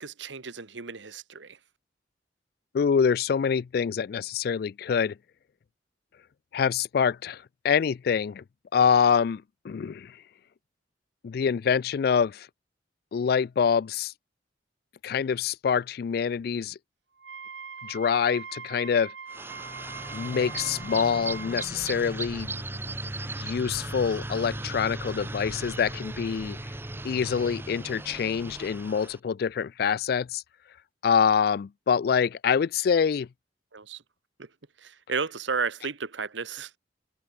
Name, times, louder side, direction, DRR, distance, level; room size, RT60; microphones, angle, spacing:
voice 1, 0.0-1.6 33.7-34.0 34.4-34.5 34.8-36.7, right 5 dB, 90° right, 1.3 m, -33 dB
voice 2, 2.7-5.2 6.5-8.4 8.7-10.2 11.2-12.5 13.1-14.1 15.0-16.8 17.8-19.1 20.1-22.5 23.4-26.6 27.0-30.4 31.0-33.3, left 6 dB, 55° left, 0.3 m, -25 dB
Wind instrument woodwind instrument, 17.2-21.7, right 5 dB, 75° right, 2.7 m, -41 dB
sound 1, 19.3-29.2, right 2 dB, 15° right, 0.8 m, -37 dB
head